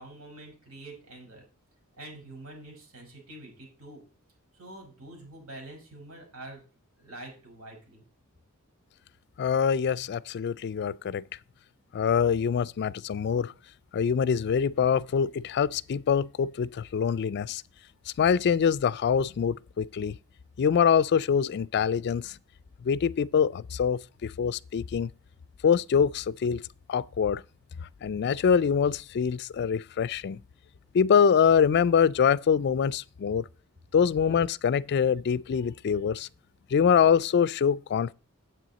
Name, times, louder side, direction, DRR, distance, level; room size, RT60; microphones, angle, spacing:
voice 1, 0.0-1.4 1.9-4.0 4.5-6.6 7.0-8.0, right 2 dB, 85° right, 5.1 m, -46 dB
voice 2, 9.4-11.2 11.9-13.5 13.9-17.6 18.2-20.2 20.6-22.3 22.8-25.1 25.6-26.6 26.9-27.4 28.0-30.4 30.9-33.4 33.9-36.3 36.7-38.1, left 7 dB, 50° left, 0.3 m, -24 dB
9.1 x 8.0 x 4.1 m
head